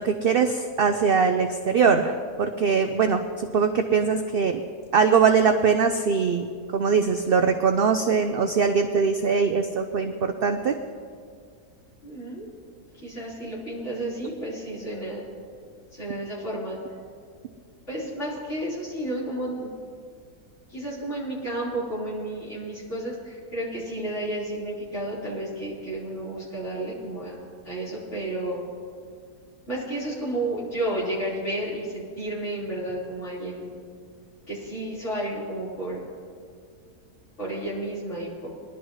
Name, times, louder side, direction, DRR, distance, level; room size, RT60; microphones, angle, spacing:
voice 1, 0.0-4.6 4.9-10.7, right 5 dB, 75° right, 7 dB, 0.5 m, -22 dB
voice 2, 12.0-12.5 12.9-15.2 15.9-16.8 17.9-19.7 20.7-27.4 27.6-28.6 29.7-33.7 34.5-36.1 37.4-38.5, right 1 dB, 50° left, -9 dB, 4.7 m, -32 dB
21.5 x 11.5 x 3.1 m, 2.1 s
omnidirectional pair, 1.6 m